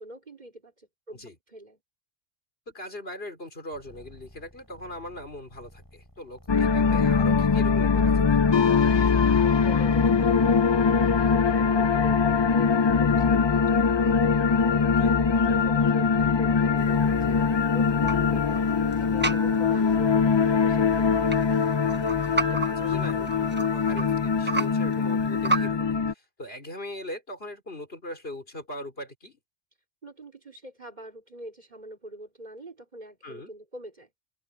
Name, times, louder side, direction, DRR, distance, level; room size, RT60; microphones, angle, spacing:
voice 1, 0.0-1.8 8.9-12.1 12.5-21.7 30.0-34.1, right 1 dB, 40° right, 3.4 m, -45 dB
voice 2, 2.7-8.4 11.7-12.1 14.8-15.1 21.8-29.4 33.2-33.5, left 1 dB, 60° left, 4.9 m, -40 dB
sound 1, 3.7-23.4, equal, 20° left, 7.8 m, -54 dB
sound 2, 6.5-26.1, left 5 dB, 45° left, 0.3 m, -22 dB
sound 3, 16.8-25.7, right 2 dB, 10° right, 0.9 m, -34 dB
open air
omnidirectional pair, 1.1 m